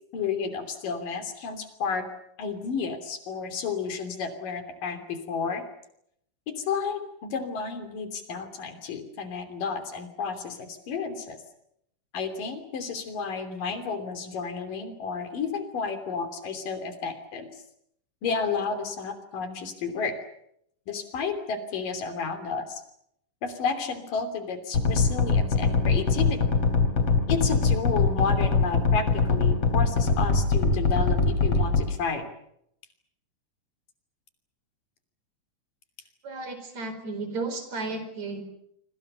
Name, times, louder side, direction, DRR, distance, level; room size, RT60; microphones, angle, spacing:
voice 1, 0.1-2.1 2.4-5.6 6.5-11.4 12.1-17.5 18.2-20.2 20.9-22.8 23.4-26.4 27.3-32.2, left 5 dB, 90° left, 9 dB, 4.8 m, -31 dB
sound 1, 24.7-31.8, left 4 dB, 45° left, 4.3 m, -22 dB
voice 2, 36.2-38.4, right 3 dB, 55° right, 9 dB, 5.8 m, -33 dB
26.5 x 25.5 x 6.8 m, 0.72 s
omnidirectional pair, 3.7 m